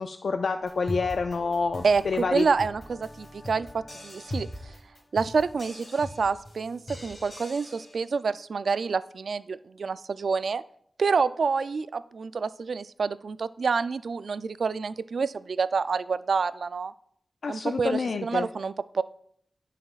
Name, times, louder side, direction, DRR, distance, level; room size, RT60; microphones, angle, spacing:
voice 1, 0.0-2.5 17.4-18.5, left 4 dB, 75° left, 7 dB, 0.4 m, -28 dB
sound 1, 0.6-8.1, left 1 dB, 45° left, 3.0 m, -41 dB
voice 2, 1.8-4.5 5.1-10.6 11.0-16.9 17.5-19.0, right 5 dB, 75° right, 14 dB, 0.3 m, -28 dB
17.0 x 5.7 x 2.4 m, 0.66 s
wide cardioid pair, 85°, 0 cm